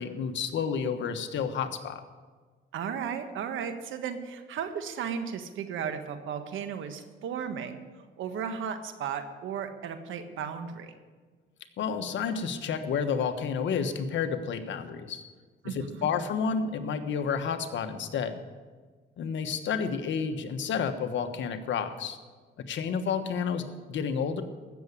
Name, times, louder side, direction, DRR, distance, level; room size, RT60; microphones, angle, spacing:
voice 1, 0.0-2.0 11.8-15.2 15.6-18.4 19.2-22.2 22.6-24.4, left 6 dB, 70° left, 8 dB, 1.3 m, -30 dB
voice 2, 2.7-7.8 8.2-10.9 15.6-16.1, right 7 dB, 80° right, 8 dB, 1.5 m, -35 dB
15.5 x 7.1 x 8.5 m, 1.5 s
cardioid pair, 90°, 20 cm